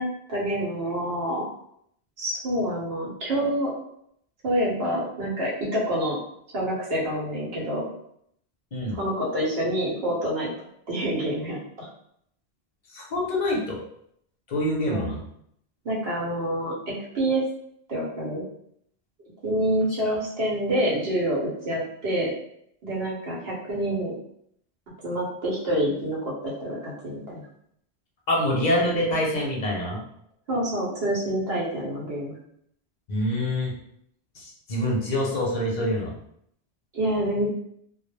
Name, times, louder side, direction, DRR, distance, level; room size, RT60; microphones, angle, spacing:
voice 1, 0.0-1.5 2.2-3.7 4.4-6.2 6.5-7.8 8.9-10.5 10.9-11.9 14.9-15.1 15.8-17.4 17.9-18.4 19.4-22.3 22.8-24.2 25.0-27.4 30.5-32.4 36.9-37.5, right 1 dB, 70° right, -4 dB, 1.0 m, -27 dB
voice 2, 12.9-13.8 14.5-15.2 20.0-20.2 28.3-30.0 33.1-33.7 34.4-36.1, left 1 dB, 50° left, -2 dB, 0.7 m, -25 dB
2.2 x 2.0 x 3.1 m, 0.72 s
omnidirectional pair, 1.1 m